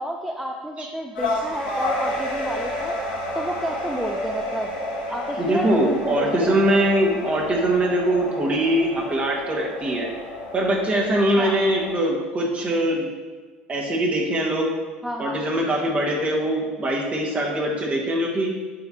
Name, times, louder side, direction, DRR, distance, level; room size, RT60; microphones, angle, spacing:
voice 1, 0.0-2.9 3.3-4.7 5.1-6.6 11.4-11.6 15.0-15.4, equal, 5° right, 1 dB, 0.5 m, -30 dB
sound 1, 1.1-11.9, left 1 dB, 80° left, 1.7 m, -31 dB
voice 2, 5.4-10.1 10.5-13.1 13.7-14.7 15.2-18.5, right 1 dB, 30° right, -1 dB, 1.7 m, -22 dB
8.6 x 4.8 x 2.9 m, 1.4 s
hypercardioid pair, 70°, 4 cm